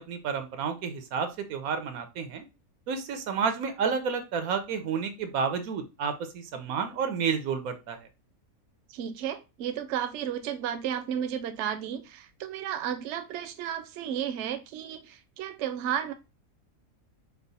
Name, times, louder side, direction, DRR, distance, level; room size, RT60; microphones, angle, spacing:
voice 1, 0.0-2.4 2.9-8.1, right 6 dB, 90° right, 1.2 m, -30 dB
voice 2, 8.9-16.1, right 9 dB, 65° right, 0.8 m, -33 dB
4.7 x 2.0 x 4.0 m
omnidirectional pair, 1.5 m